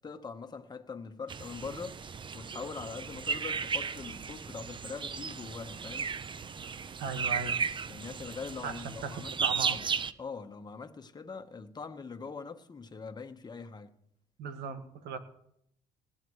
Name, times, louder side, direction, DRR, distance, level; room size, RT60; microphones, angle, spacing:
voice 1, 0.0-2.0 2.3-6.1 7.9-9.9 10.2-13.9, left 5 dB, 25° left, 1.2 m, -42 dB
sound 1, 1.3-10.1, right 6 dB, 30° right, 0.6 m, -35 dB
voice 2, 7.0-7.6 8.6-9.8 14.4-15.2, right 5 dB, 80° right, 1.9 m, -37 dB
20.0 x 16.5 x 3.2 m
cardioid pair, 110°, 17 cm